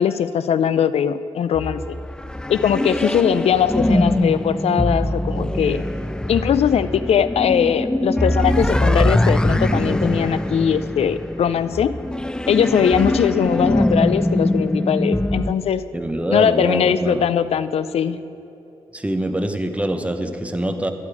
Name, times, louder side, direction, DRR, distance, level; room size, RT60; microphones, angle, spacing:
voice 1, 0.0-2.0 2.5-5.8 6.3-11.9 12.5-15.8 16.3-18.2, left 8 dB, 70° left, 14 dB, 0.4 m, -20 dB
sound 1, 1.5-15.5, left 1 dB, 5° left, 0.3 m, -22 dB
voice 2, 15.9-17.3 18.9-20.9, right 1 dB, 10° right, 7 dB, 0.9 m, -24 dB
11.5 x 8.6 x 4.9 m, 2.9 s
cardioid pair, 65°, 11 cm